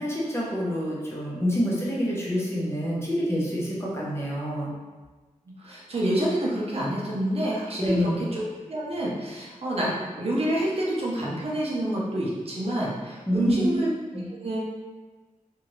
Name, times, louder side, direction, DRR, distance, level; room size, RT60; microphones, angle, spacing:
voice 1, 0.0-4.7 7.8-8.2 13.3-13.7 14.1-14.2, equal, 20° left, -5 dB, 0.7 m, -27 dB
voice 2, 5.6-9.9 10.2-13.9 14.3-14.6, right 1 dB, 50° right, -5 dB, 0.7 m, -28 dB
2.7 x 2.5 x 3.0 m, 1.3 s
wide cardioid pair, 115°, 13 cm